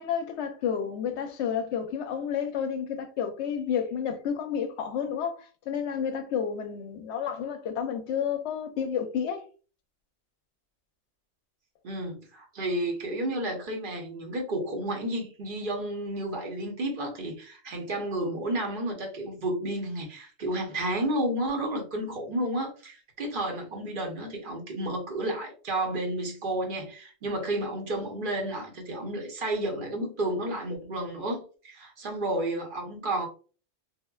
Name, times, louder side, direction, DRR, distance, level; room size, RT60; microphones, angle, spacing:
voice 1, 0.0-9.5, left 7 dB, 65° left, 0.8 m, -31 dB
voice 2, 11.8-33.3, right 1 dB, 45° right, 0.9 m, -31 dB
3.6 x 2.1 x 2.2 m
omnidirectional pair, 1.3 m